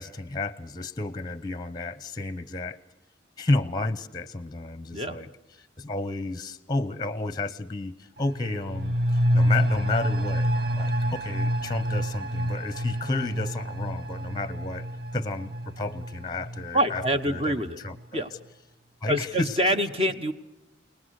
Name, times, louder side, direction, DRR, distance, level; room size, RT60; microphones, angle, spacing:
voice 1, 0.0-2.8 3.4-5.3 5.8-10.5 10.8-18.3 19.0-19.5, left 2 dB, 20° left, 17 dB, 0.8 m, -31 dB
sound 1, 8.2-17.6 17.9-18.0, equal, 55° right, 1.1 m, -28 dB
voice 2, 16.7-17.8 18.1-18.3 19.1-20.3, equal, 30° right, 9 dB, 1.1 m, -25 dB
29.5 x 19.5 x 6.5 m, 0.86 s
head